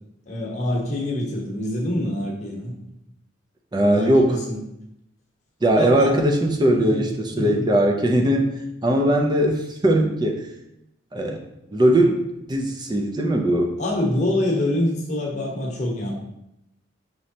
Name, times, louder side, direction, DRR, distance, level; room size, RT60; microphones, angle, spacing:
voice 1, 0.3-2.7 3.8-4.6 5.7-6.1 6.8-7.7 13.8-16.1, left 1 dB, 40° left, -2 dB, 1.0 m, -26 dB
voice 2, 3.7-4.4 5.6-8.5 8.8-10.4 11.1-11.4 11.7-12.2 12.5-13.8, right 1 dB, 20° right, 2 dB, 0.5 m, -19 dB
5.3 x 3.1 x 2.8 m, 0.84 s
head